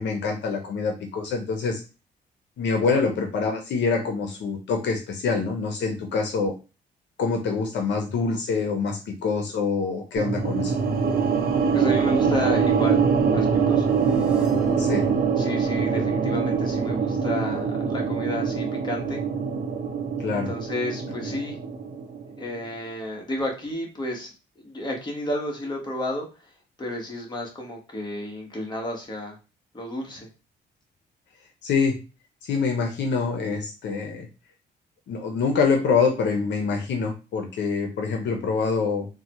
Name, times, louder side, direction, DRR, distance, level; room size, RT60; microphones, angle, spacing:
voice 1, 0.0-1.8 2.6-6.5 7.2-10.7 14.8-15.0 20.2-20.5 31.6-32.0 32.4-34.3 35.1-39.1, left 5 dB, 70° left, 3 dB, 0.7 m, -25 dB
sound 1, 10.2-22.4, right 6 dB, 50° right, 0.6 m, -24 dB
voice 2, 11.7-13.0 13.3-13.9 15.4-19.2 20.3-21.6 22.4-26.3 26.8-29.4 29.7-30.3, left 1 dB, 25° left, 0 dB, 1.2 m, -31 dB
sound 2, 13.3-17.3, right 1 dB, 5° right, 0.8 m, -40 dB
3.8 x 2.2 x 2.9 m, 0.31 s
cardioid pair, 100°, 19 cm